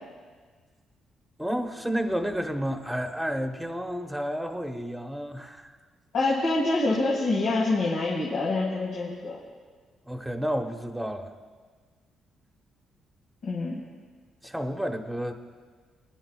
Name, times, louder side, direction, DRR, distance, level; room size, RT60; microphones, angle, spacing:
voice 1, 1.4-5.7 10.1-11.3 14.4-15.3, equal, 5° right, 4 dB, 1.1 m, -31 dB
voice 2, 6.1-9.4 13.4-13.8, left 2 dB, 75° left, -4 dB, 2.0 m, -26 dB
21.0 x 10.5 x 2.4 m, 1.5 s
cardioid pair, 90°, 0 cm